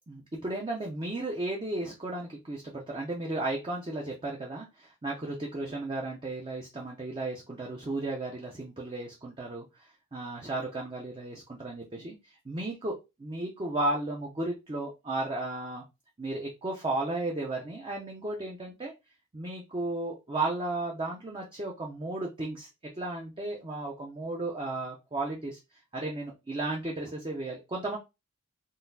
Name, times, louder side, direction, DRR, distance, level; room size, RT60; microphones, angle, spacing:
voice 1, 0.1-9.6 10.1-15.8 16.2-18.9 19.3-22.7 23.0-25.6 25.9-28.0, right 2 dB, 25° right, -1 dB, 0.5 m, -34 dB
3.8 x 2.4 x 2.6 m, 0.25 s
head